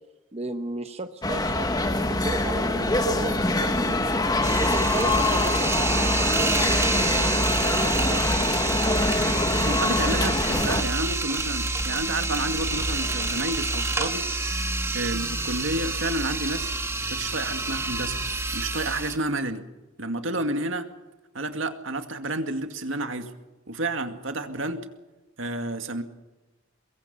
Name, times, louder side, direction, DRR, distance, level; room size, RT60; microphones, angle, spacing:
voice 1, 0.3-4.1 4.6-8.9, right 2 dB, 30° right, 7 dB, 0.9 m, -35 dB
sound 1, 1.2-10.8, left 2 dB, 20° left, 1.4 m, -24 dB
sound 2, 4.4-19.2, right 2 dB, 15° right, 1.6 m, -27 dB
sound 3, 7.3-13.5, left 1 dB, 50° left, 7.0 m, -44 dB
voice 2, 9.5-16.8 17.1-18.2 18.5-19.7 20.0-20.9 21.3-23.3 23.7-24.9 25.4-26.0, right 2 dB, 70° right, 7 dB, 2.2 m, -30 dB
24.0 x 22.0 x 5.6 m, 1.1 s
head